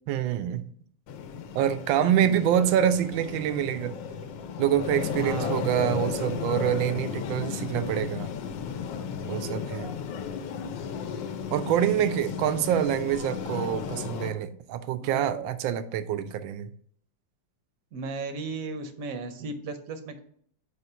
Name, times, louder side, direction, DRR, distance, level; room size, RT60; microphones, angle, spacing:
voice 1, 0.1-0.7 1.5-4.0 4.6-8.3 9.3-9.9 11.5-16.7, right 10 dB, 90° right, 1.3 m, -26 dB
sound 1, 1.1-14.3, left 7 dB, 75° left, 1.3 m, -34 dB
voice 2, 5.2-5.6 14.9-15.5 17.9-20.2, right 4 dB, 60° right, 0.9 m, -36 dB
4.9 x 4.1 x 5.5 m
omnidirectional pair, 2.1 m